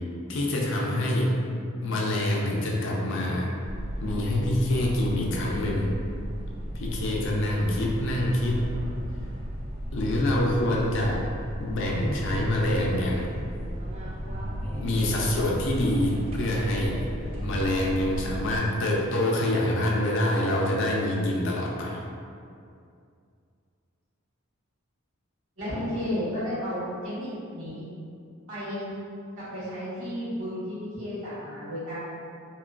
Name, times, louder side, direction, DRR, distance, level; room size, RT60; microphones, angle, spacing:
voice 1, 0.3-1.3 1.8-3.5 4.0-5.9 6.7-8.7 9.9-11.2 11.6-13.3 14.7-17.0 17.4-22.0, left 1 dB, 60° left, -2 dB, 0.4 m, -26 dB
sound 1, 3.6-18.6, equal, 30° right, 0.3 m, -34 dB
voice 2, 25.6-27.9 28.5-28.9 29.4-32.0, equal, 80° right, -11 dB, 1.3 m, -33 dB
2.8 x 2.2 x 2.4 m, 2.4 s
head